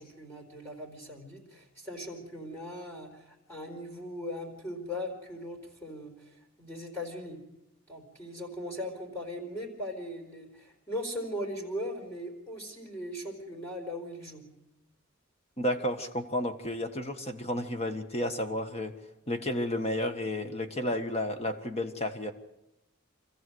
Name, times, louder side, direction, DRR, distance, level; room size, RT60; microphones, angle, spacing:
voice 1, 0.0-7.4 7.9-14.4, left 1 dB, 15° left, -1 dB, 4.1 m, -39 dB
voice 2, 15.6-18.9 19.3-22.3, left 1 dB, 30° left, 7 dB, 1.5 m, -32 dB
25.5 x 14.5 x 8.0 m, 0.92 s
head